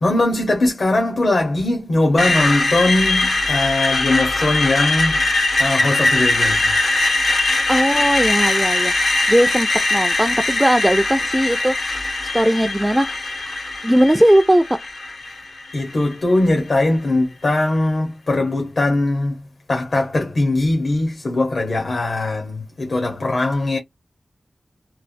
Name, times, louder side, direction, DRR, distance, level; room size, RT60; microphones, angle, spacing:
voice 1, 0.0-5.2 5.6-6.7 15.7-19.4 19.7-23.8, left 2 dB, 65° left, 0.9 m, -20 dB
Screech, 2.2-16.1, left 2 dB, 90° left, 1.2 m, -21 dB
voice 2, 7.7-13.6 13.8-14.7, equal, 10° right, 0.3 m, -18 dB
3.1 x 2.1 x 2.5 m
wide cardioid pair, 85°, 0 cm